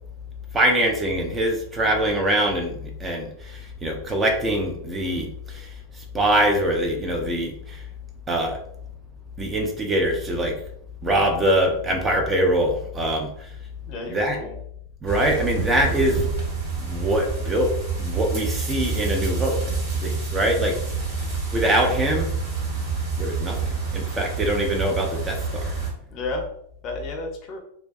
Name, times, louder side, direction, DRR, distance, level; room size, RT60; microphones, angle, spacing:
voice 1, 0.5-5.3 6.1-7.8 8.3-8.6 9.4-10.5 11.0-13.3 14.1-14.4 15.0-16.2 16.8-17.7 18.0-19.7 20.0-20.8 21.5-22.3 23.2-23.6 23.9-25.7, right 1 dB, 20° right, 2 dB, 0.4 m, -23 dB
voice 2, 13.9-14.6 17.5-17.6 26.1-26.5 26.8-27.6, left 2 dB, 35° left, 3 dB, 0.5 m, -32 dB
sound 1, 15.1-25.9, right 5 dB, 50° right, 1.0 m, -28 dB
2.3 x 2.2 x 2.5 m, 0.67 s
figure-of-eight pair, 90°, 0 cm